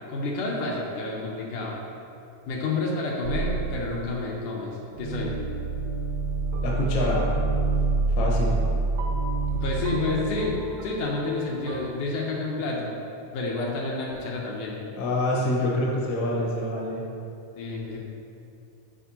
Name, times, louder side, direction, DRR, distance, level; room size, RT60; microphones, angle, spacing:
voice 1, 0.1-1.8 2.5-5.3 9.6-10.6 10.8-12.9 13.3-14.8 17.6-18.0, left 3 dB, 75° left, -3 dB, 2.1 m, -29 dB
sound 1, 3.2-11.9, right 3 dB, 75° right, 1.8 m, -28 dB
voice 2, 6.6-7.2 8.1-8.6 15.0-17.0, left 1 dB, 60° left, -4 dB, 1.3 m, -26 dB
10.5 x 4.4 x 2.8 m, 2.7 s
omnidirectional pair, 3.8 m